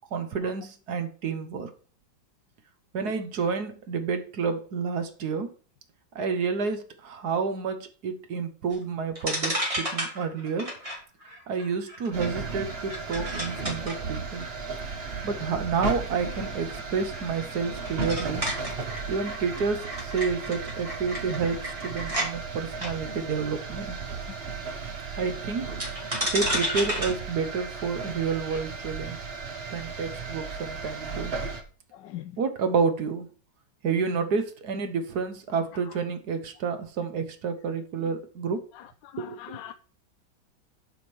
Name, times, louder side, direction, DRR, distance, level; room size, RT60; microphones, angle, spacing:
voice 1, 0.1-1.7 2.9-5.5 6.1-10.7 11.5-14.4 15.2-18.5 19.1-24.0 25.2-25.8 26.3-29.2 29.7-31.3 32.4-33.3 33.8-38.6 39.2-39.6, right 5 dB, 60° right, 1.5 m, -29 dB
sound 1, 8.7-8.8 9.1-22.3 22.7-22.9 25.8-28.6, equal, 15° right, 2.9 m, -33 dB
sound 2, 12.1-31.6, right 4 dB, 35° right, 1.3 m, -35 dB
voice 2, 31.9-32.4 35.8-36.0 38.0-38.1 38.7-39.7, left 13 dB, 75° left, 1.2 m, -43 dB
8.6 x 5.2 x 6.1 m
omnidirectional pair, 2.1 m